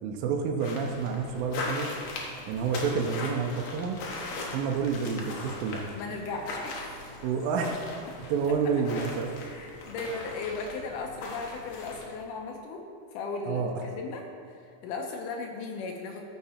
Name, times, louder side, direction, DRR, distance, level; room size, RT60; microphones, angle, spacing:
voice 1, 0.0-1.9 2.5-4.0 4.5-5.8 7.2-7.8 8.3-9.3 13.5-13.9, right 5 dB, 75° right, 2 dB, 2.3 m, -29 dB
sound 1, 0.6-12.2, left 2 dB, 60° left, 2.1 m, -39 dB
voice 2, 6.0-6.9 8.9-9.0 9.4-12.8 13.1-14.3 14.8-16.2, left 4 dB, 80° left, 2 dB, 1.9 m, -36 dB
14.0 x 5.9 x 4.3 m, 2.5 s
omnidirectional pair, 4.5 m